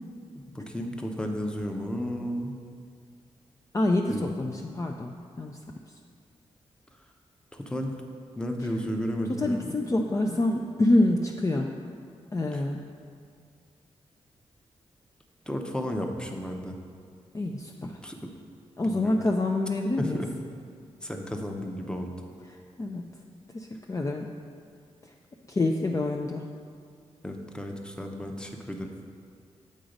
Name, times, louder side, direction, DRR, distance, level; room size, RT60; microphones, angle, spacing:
voice 1, 0.5-2.6 4.1-4.8 7.5-7.9 8.4-9.7 15.5-16.8 18.0-18.3 18.9-19.2 20.0-20.3 21.0-22.1 27.2-28.9, equal, 10° left, 3 dB, 0.8 m, -33 dB
voice 2, 3.7-5.6 8.6-8.7 9.4-11.7 12.3-12.8 17.3-18.0 18.8-20.2 22.5-23.1 23.5-24.3 25.5-26.5, left 2 dB, 30° left, 1 dB, 0.5 m, -27 dB
7.4 x 3.9 x 5.1 m, 2.2 s
cardioid pair, 55°, 11 cm